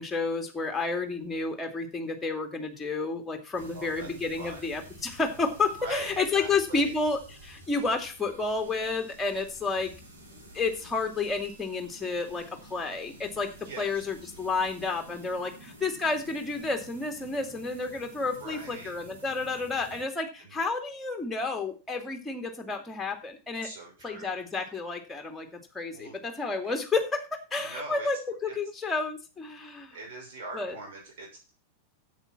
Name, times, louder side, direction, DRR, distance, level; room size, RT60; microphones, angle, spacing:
voice 1, 0.0-9.9 10.5-23.7 24.0-30.0 30.5-30.8, left 3 dB, 10° left, 5 dB, 2.4 m, -31 dB
sound 1, 3.5-20.0, right 1 dB, 85° right, 6.5 m, -50 dB
voice 2, 3.7-4.1 4.4-4.8 5.8-6.9 13.6-14.1 18.4-18.9 20.4-20.5 23.6-24.4 25.9-26.1 27.6-28.1 29.9-31.5, right 2 dB, 50° right, 0 dB, 6.1 m, -42 dB
9.9 x 8.4 x 5.8 m, 0.32 s
figure-of-eight pair, 90°, 0 cm